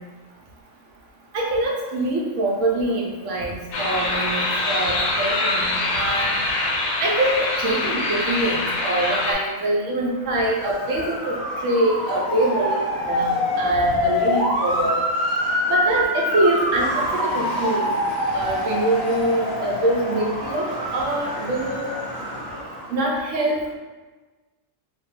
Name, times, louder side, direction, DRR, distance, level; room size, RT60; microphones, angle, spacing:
voice 1, 1.3-6.4 7.0-15.0 15.7-17.9 18.3-20.7 20.9-21.9 22.9-23.7, right 1 dB, 70° right, -2 dB, 0.9 m, -24 dB
sound 1, 3.7-9.3, left 2 dB, 80° left, 1.0 m, -24 dB
Motor vehicle (road) / Siren, 10.3-23.0, left 1 dB, 25° left, 0.7 m, -25 dB
2.7 x 2.2 x 3.1 m, 1.3 s
omnidirectional pair, 1.4 m